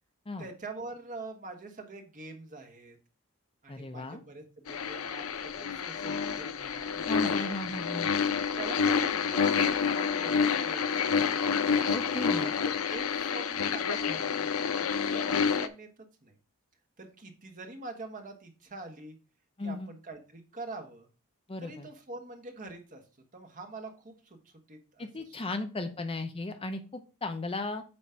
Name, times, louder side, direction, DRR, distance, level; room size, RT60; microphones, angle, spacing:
voice 1, 0.4-3.0 3.6-8.0 8.6-11.2 12.4-15.9 16.2-16.3 17.0-19.2 19.6-21.1 21.6-23.0 23.3-25.1, right 2 dB, 40° right, 4 dB, 1.4 m, -45 dB
voice 2, 3.7-4.2 7.1-8.1 11.9-12.5 19.6-19.9 21.5-21.9 25.0-27.8, left 2 dB, 25° left, 7 dB, 0.7 m, -36 dB
sound 1, 4.7-15.7, left 6 dB, 75° left, 0.7 m, -28 dB
8.7 x 3.2 x 5.7 m, 0.33 s
head